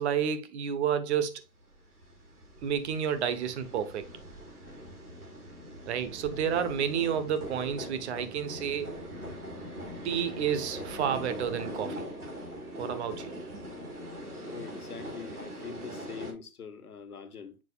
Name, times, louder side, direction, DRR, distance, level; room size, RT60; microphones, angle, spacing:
voice 1, 0.0-1.4 2.6-4.1 5.9-9.0 10.0-12.0 12.8-13.6, right 8 dB, 50° right, 1.3 m, -30 dB
sound 1, 2.0-16.3, equal, 85° right, 3.9 m, -42 dB
voice 2, 14.5-17.6, left 6 dB, 80° left, 1.5 m, -43 dB
7.5 x 6.2 x 2.4 m
figure-of-eight pair, 120°, 44 cm